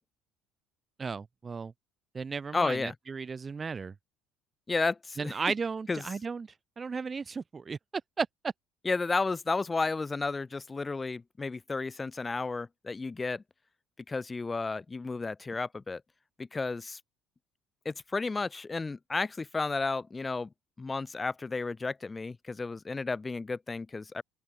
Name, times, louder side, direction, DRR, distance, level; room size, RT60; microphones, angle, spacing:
voice 1, 1.0-1.7 2.1-3.9 5.2-6.5 6.8-7.8 8.2-8.5, right 5 dB, 30° right, 1.4 m, -34 dB
voice 2, 2.5-2.9 4.7-5.3 5.9-6.0 8.8-13.4 14.1-16.0 16.4-17.0 17.9-20.5 20.8-24.2, left 3 dB, 20° left, 0.4 m, -32 dB
open air
supercardioid pair, 85°, 0 cm